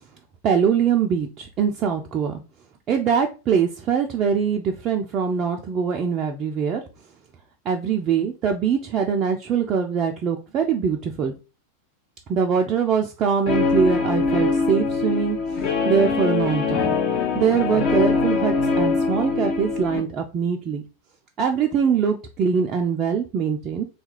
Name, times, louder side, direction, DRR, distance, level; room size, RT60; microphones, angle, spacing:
voice 1, 0.4-2.4 2.9-6.8 7.7-11.3 12.3-17.0 17.3-20.8 21.4-23.8, right 7 dB, 30° right, 2 dB, 0.3 m, -23 dB
Guitar, 13.5-20.0, left 4 dB, 40° left, 0.7 m, -23 dB
2.8 x 2.3 x 3.0 m, 0.32 s
figure-of-eight pair, 90°, 0 cm